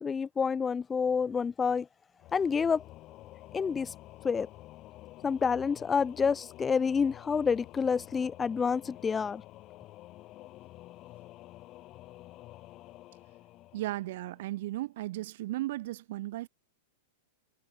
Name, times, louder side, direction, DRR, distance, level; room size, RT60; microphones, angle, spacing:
voice 1, 0.0-1.9 2.3-2.8 3.5-3.9 4.2-4.5 5.2-9.4, left 6 dB, 20° left, 1.5 m, -28 dB
Singing / Musical instrument, 2.2-14.8, left 16 dB, 40° left, 7.2 m, -50 dB
voice 2, 13.7-16.5, right 16 dB, 60° right, 3.5 m, -35 dB
hypercardioid pair, 110°, 0 cm